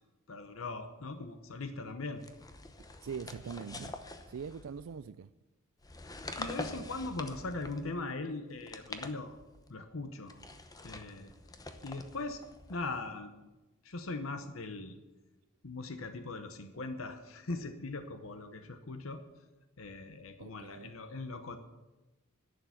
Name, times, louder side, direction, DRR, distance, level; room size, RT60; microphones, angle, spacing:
voice 1, 0.3-2.2 6.1-9.4 9.7-10.4 10.8-11.3 11.8-12.4 12.7-13.3 13.8-15.0 15.6-19.2 19.8-21.6, left 3 dB, 75° left, 0.9 m, -40 dB
sound 1, 2.2-5.0 5.8-8.0 8.5-9.7 10.2-13.1, left 2 dB, 20° left, 0.9 m, -46 dB
voice 2, 3.0-3.9 4.3-5.3 20.4-20.9, right 6 dB, 75° right, 0.4 m, -42 dB
11.0 x 6.8 x 9.5 m
head